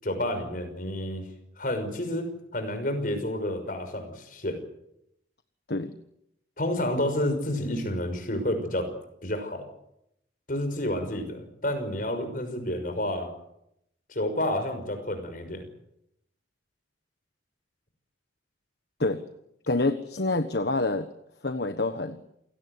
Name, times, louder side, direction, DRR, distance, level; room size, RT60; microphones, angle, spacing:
voice 1, 0.0-1.3 1.6-4.6 6.6-8.9 9.2-9.6 10.5-13.3 14.1-15.7, left 1 dB, 50° left, 7 dB, 5.9 m, -30 dB
voice 2, 19.7-21.1 21.4-22.2, left 2 dB, 65° left, 9 dB, 1.4 m, -27 dB
28.5 x 18.0 x 8.1 m, 0.79 s
head